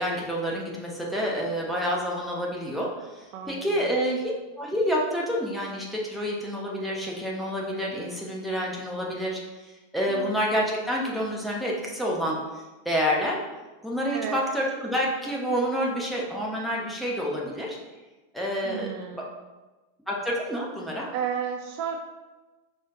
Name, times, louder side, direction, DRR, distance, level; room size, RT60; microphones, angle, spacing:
voice 1, 0.0-4.3 4.6-13.4 13.8-17.8 18.3-18.9 19.1-19.2 20.1-21.1, equal, ahead, -4 dB, 1.0 m, -28 dB
voice 2, 3.3-4.0 10.1-10.4 14.1-14.4 18.6-19.3 21.1-22.0, right 7 dB, 45° right, 3 dB, 0.3 m, -33 dB
4.7 x 3.0 x 3.6 m, 1.2 s
figure-of-eight pair, 90°, 0 cm